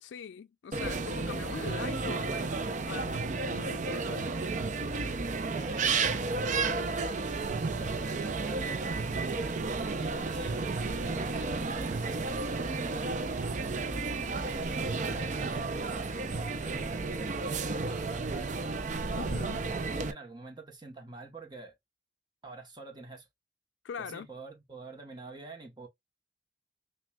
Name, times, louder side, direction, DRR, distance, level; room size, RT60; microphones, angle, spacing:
voice 1, 0.0-4.4 19.1-19.7 23.8-24.3, left 6 dB, 85° left, 0.4 m, -42 dB
sound 1, 0.7-20.1, right 3 dB, 40° right, 0.5 m, -32 dB
voice 2, 5.6-6.8 7.8-8.9 10.0-12.9 14.4-14.7 15.1-18.6 19.7-21.7 22.4-23.3 24.0-25.9, right 3 dB, 25° right, 1.0 m, -47 dB
sound 2, 6.9-15.2, right 1 dB, 75° right, 1.1 m, -49 dB
5.9 x 2.3 x 2.2 m
head